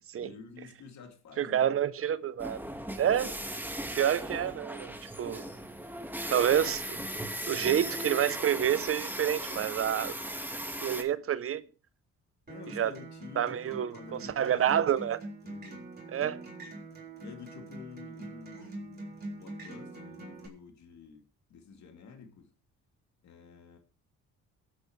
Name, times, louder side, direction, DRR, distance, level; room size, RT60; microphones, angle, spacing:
voice 1, 0.2-1.8 3.1-3.6 12.5-14.8 15.4-15.9 17.2-22.5 23.2-23.8, left 5 dB, 65° left, 2.5 m, -49 dB
voice 2, 1.4-2.6 3.0-3.3 3.9-5.5 6.3-7.0 7.5-10.1 10.8-11.6 12.8-12.9 13.4-14.0 14.4-15.2 16.1-16.4, right 10 dB, 50° right, 0.6 m, -28 dB
sound 1, 2.4-11.0, right 1 dB, 5° right, 1.5 m, -37 dB
Acoustic guitar, 12.5-20.5, right 2 dB, 30° right, 3.8 m, -44 dB
22.0 x 8.5 x 3.2 m
cardioid pair, 90°, 30 cm